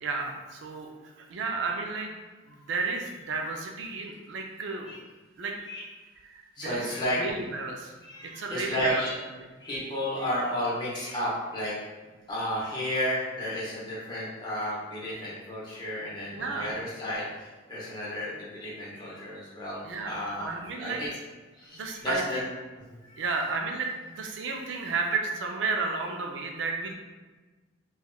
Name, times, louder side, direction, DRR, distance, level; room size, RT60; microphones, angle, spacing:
voice 1, 0.0-0.9 1.2-2.1 2.5-4.9 5.4-5.5 6.2-6.9 7.2-7.9 8.2-9.0 9.4-9.5 16.3-16.7 19.8-20.1 20.4-21.0 21.7-22.4 23.2-26.9, right 4 dB, 65° right, 2 dB, 0.4 m, -32 dB
voice 2, 6.6-7.2 8.0-9.1 9.6-11.7 12.3-21.1 21.6-22.4 22.9-23.2, equal, 25° left, -7 dB, 0.8 m, -32 dB
3.4 x 2.3 x 2.3 m, 1.3 s
head